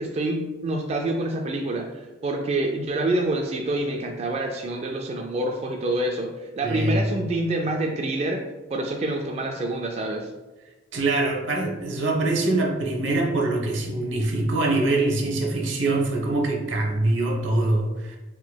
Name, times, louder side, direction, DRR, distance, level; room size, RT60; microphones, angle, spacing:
voice 1, 0.0-8.4 8.7-10.3, right 1 dB, 35° right, 2 dB, 0.3 m, -27 dB
voice 2, 6.6-7.0 10.9-18.2, right 2 dB, 80° right, 0 dB, 0.8 m, -24 dB
4.5 x 3.8 x 2.2 m, 1.1 s
head